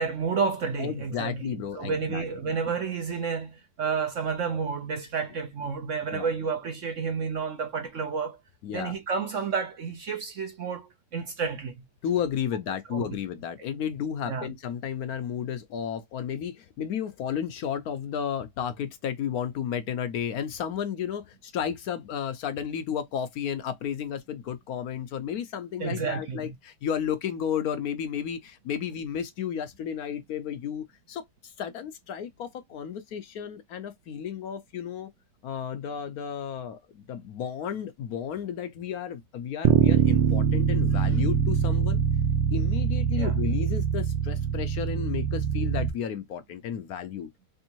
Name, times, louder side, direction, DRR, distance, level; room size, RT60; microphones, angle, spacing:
voice 1, 0.0-8.4 8.7-11.7 12.9-13.0 14.3-14.5 25.8-26.5 43.2-43.4, right 5 dB, 60° right, 0.9 m, -30 dB
voice 2, 0.8-2.5 6.1-6.3 8.6-9.0 12.0-35.1 35.4-42.0 42.5-47.3, left 8 dB, 70° left, 1.0 m, -33 dB
Bass guitar, 39.6-45.9, right 7 dB, 85° right, 1.3 m, -24 dB
3.6 x 3.4 x 2.8 m
omnidirectional pair, 1.9 m